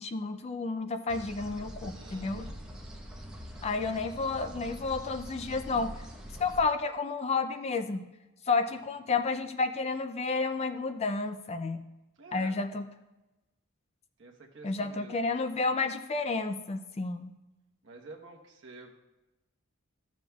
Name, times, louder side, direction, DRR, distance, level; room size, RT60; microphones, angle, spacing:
voice 1, 0.0-2.5 3.6-5.9 6.4-8.0 8.5-11.8 12.3-12.8 14.6-17.3, left 4 dB, 30° left, 8 dB, 0.4 m, -31 dB
sound 1, 1.1-6.6, equal, 5° right, 0.9 m, -44 dB
voice 2, 1.9-2.6 3.9-4.0 8.7-9.0 12.2-12.6 14.2-15.3 17.8-18.9, right 3 dB, 60° right, 0 dB, 1.1 m, -50 dB
14.0 x 7.1 x 2.3 m, 1.0 s
head